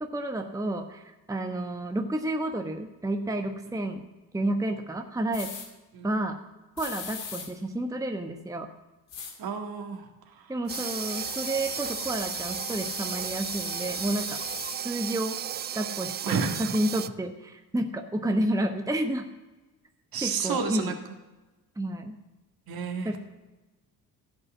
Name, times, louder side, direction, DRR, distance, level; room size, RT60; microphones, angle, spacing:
voice 1, 0.0-4.0 4.3-5.5 6.0-6.4 6.8-8.7 10.5-14.4 14.8-15.4 15.7-19.3 20.2-20.9 21.8-22.1 23.0-23.2, right 1 dB, 5° right, 4 dB, 1.1 m, -30 dB
sound 1, 5.3-5.7 6.8-7.5 9.1-9.3 10.7-14.8, left 5 dB, 60° left, 2.3 m, -38 dB
voice 2, 9.4-10.5 16.2-16.7 20.1-21.0 22.7-23.2, right 5 dB, 45° right, 4 dB, 1.8 m, -31 dB
sound 2, 10.7-17.1, right 10 dB, 25° right, 0.3 m, -35 dB
15.5 x 5.4 x 7.3 m, 1.1 s
figure-of-eight pair, 45°, 48 cm